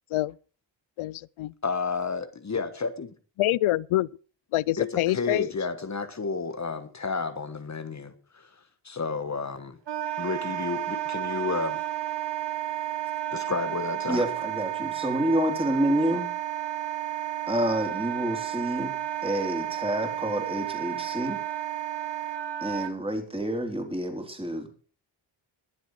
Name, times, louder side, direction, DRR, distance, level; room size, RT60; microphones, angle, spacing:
voice 1, 1.0-1.5 3.4-4.1 4.5-5.5, left 16 dB, 80° left, 0.6 m, -25 dB
voice 2, 1.6-3.1 4.8-9.8 10.2-11.8 13.3-14.2, left 4 dB, 35° left, 1.4 m, -31 dB
Wind instrument woodwind instrument, 9.9-22.9, right 13 dB, 60° right, 1.5 m, -32 dB
voice 3, 14.1-16.3 17.5-19.0 19.2-21.4 22.6-24.7, right 1 dB, 10° right, 4.1 m, -28 dB
22.0 x 7.8 x 4.8 m
cardioid pair, 95°, 48 cm